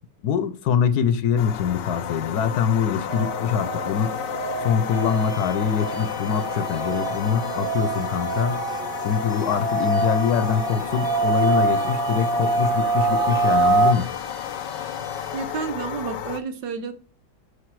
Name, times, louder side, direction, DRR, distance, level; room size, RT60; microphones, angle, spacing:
voice 1, 0.2-8.6 9.0-14.1, left 7 dB, 70° left, 1.2 m, -24 dB
sound 1, 1.4-16.4, left 9 dB, 85° left, 1.4 m, -32 dB
sound 2, 3.1-13.9, right 3 dB, 45° right, 0.7 m, -25 dB
sound 3, 4.9-15.4, right 1 dB, 5° right, 0.7 m, -45 dB
voice 2, 15.3-16.9, right 5 dB, 80° right, 1.6 m, -30 dB
9.8 x 5.5 x 4.7 m
omnidirectional pair, 1.9 m